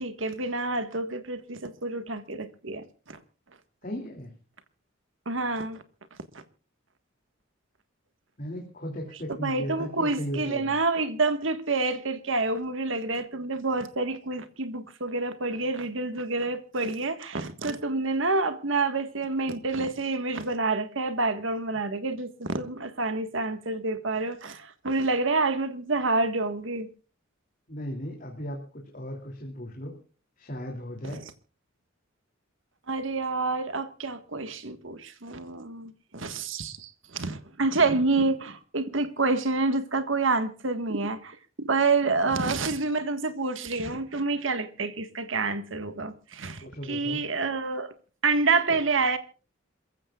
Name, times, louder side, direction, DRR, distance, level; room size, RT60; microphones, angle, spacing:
voice 1, 0.0-3.2 5.2-5.8 9.4-26.9 32.9-47.9 48.2-49.2, right 3 dB, 70° right, 1.6 m, -28 dB
voice 2, 3.8-4.3 8.4-10.8 27.7-30.0 30.4-31.2 42.2-42.6 46.6-47.2, equal, 40° left, 2.9 m, -36 dB
27.5 x 15.5 x 2.4 m
head